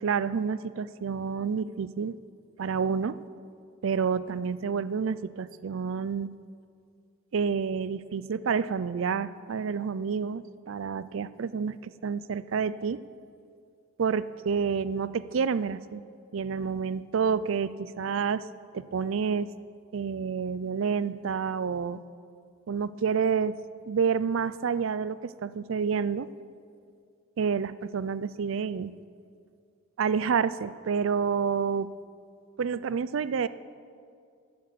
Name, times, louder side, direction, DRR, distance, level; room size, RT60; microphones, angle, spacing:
voice 1, 0.0-2.2 2.6-3.2 3.8-6.3 7.3-13.0 14.0-16.0 16.3-18.4 18.7-19.5 19.9-22.0 22.7-23.6 23.9-26.3 27.4-28.9 30.0-31.9 32.6-33.5, right 6 dB, 75° right, 16 dB, 0.4 m, -29 dB
15.5 x 7.8 x 6.7 m, 2.3 s
head